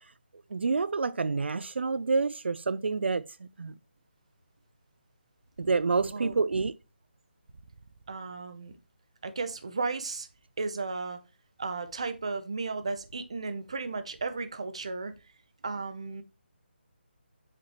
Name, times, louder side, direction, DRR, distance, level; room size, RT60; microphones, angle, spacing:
voice 1, 0.5-3.2 3.6-3.7 5.6-6.7, right 4 dB, 75° right, 0.3 m, -28 dB
voice 2, 8.1-8.8 9.2-10.3 10.6-11.2 11.6-15.1 15.6-16.2, right 3 dB, 30° right, 0.6 m, -34 dB
7.2 x 5.1 x 2.9 m
hypercardioid pair, 180°, 6 cm